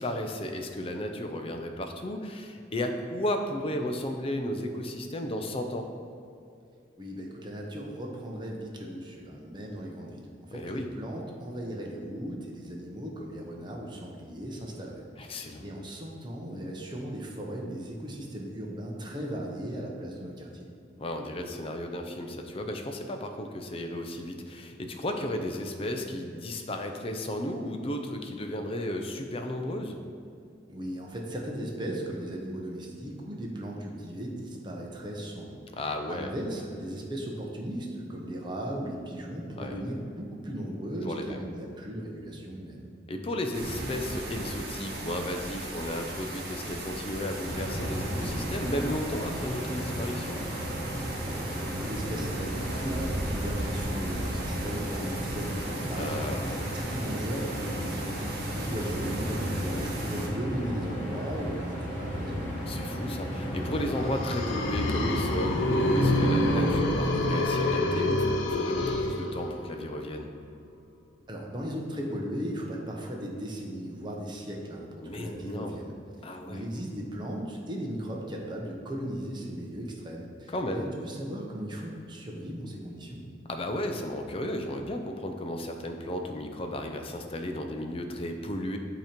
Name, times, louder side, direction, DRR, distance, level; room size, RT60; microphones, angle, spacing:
voice 1, 0.0-5.9 10.5-10.9 15.2-15.6 21.0-30.0 35.7-36.3 39.6-39.8 41.0-41.4 43.1-50.4 55.9-56.6 62.7-68.2 68.5-70.3 75.0-75.8 76.2-76.6 80.5-80.9 83.5-88.8, left 1 dB, 30° left, 5 dB, 0.5 m, -34 dB
voice 2, 7.0-20.7 30.7-35.6 36.1-42.8 51.2-62.6 71.3-75.9 76.5-83.2, equal, 25° right, -1 dB, 0.8 m, -37 dB
sound 1, 43.5-60.3, right 2 dB, 55° right, 1.0 m, -37 dB
sound 2, 47.4-66.7, equal, 10° left, 1.5 m, -34 dB
sound 3, 63.9-69.8, left 1 dB, 85° left, 0.6 m, -26 dB
8.2 x 3.0 x 5.1 m, 2.5 s
head